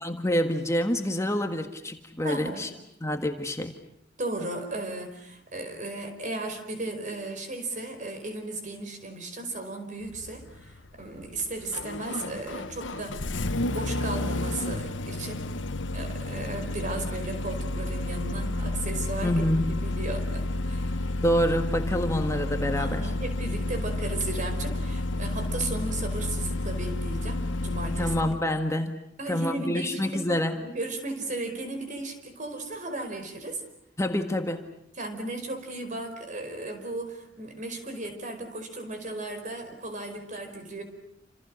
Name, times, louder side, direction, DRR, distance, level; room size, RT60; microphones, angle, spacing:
voice 1, 0.0-2.7 3.0-3.7 19.2-19.8 21.2-23.1 28.0-30.6 34.0-34.6, equal, 15° left, 5 dB, 1.6 m, -27 dB
voice 2, 2.2-2.7 4.2-15.5 15.9-21.0 22.7-28.4 29.2-33.6 34.9-40.8, right 2 dB, 45° right, 6 dB, 5.1 m, -35 dB
Engine starting, 10.0-28.4, left 1 dB, 85° left, 1.1 m, -31 dB
29.0 x 27.5 x 6.4 m, 0.77 s
head